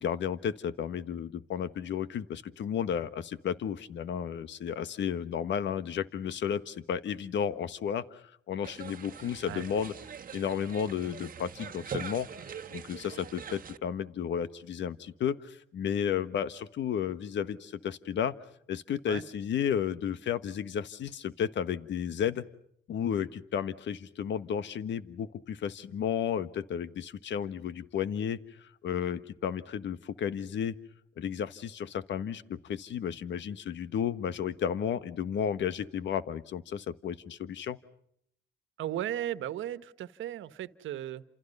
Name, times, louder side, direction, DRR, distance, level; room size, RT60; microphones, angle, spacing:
voice 1, 0.0-9.9 10.3-12.4 12.7-18.3 18.7-22.4 22.9-30.8 31.2-37.8, left 8 dB, 65° left, 13 dB, 1.4 m, -33 dB
sound 1, 8.6-13.8, right 7 dB, 45° right, 1.4 m, -43 dB
voice 2, 38.8-41.2, right 12 dB, 80° right, 13 dB, 1.5 m, -36 dB
30.0 x 28.0 x 5.5 m, 0.69 s
cardioid pair, 90°, 20 cm